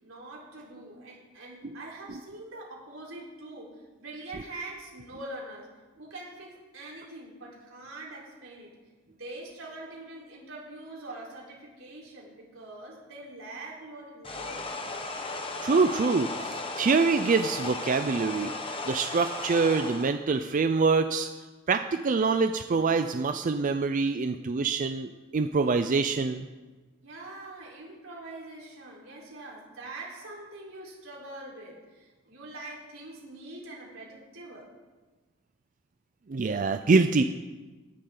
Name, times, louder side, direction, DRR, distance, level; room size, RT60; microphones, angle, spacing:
voice 1, 0.0-5.7 6.0-8.7 9.1-14.7 27.0-34.7, right 2 dB, 85° right, -4 dB, 4.1 m, -44 dB
sound 1, 14.2-20.1, left 2 dB, 25° left, 1.1 m, -35 dB
voice 2, 15.6-18.5 18.9-21.3 21.7-26.5 36.3-37.2, right 4 dB, 40° right, 9 dB, 0.4 m, -25 dB
17.0 x 11.0 x 3.9 m, 1.3 s
head